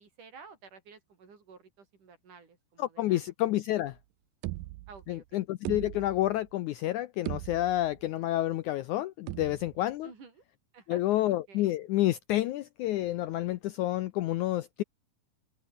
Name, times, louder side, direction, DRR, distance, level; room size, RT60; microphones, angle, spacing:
voice 1, 0.0-3.3 4.9-5.4 10.0-10.4 10.7-11.7, right 5 dB, 55° right, 6.1 m, -53 dB
voice 2, 2.8-4.0 5.1-10.1 10.9-14.8, left 15 dB, 80° left, 1.7 m, -29 dB
sound 1, 3.9-4.0 4.4-5.2 5.6-6.5 6.8-6.9 7.3-8.0 9.3-9.9, right 19 dB, 80° right, 2.0 m, -39 dB
omnidirectional pair, 4.3 m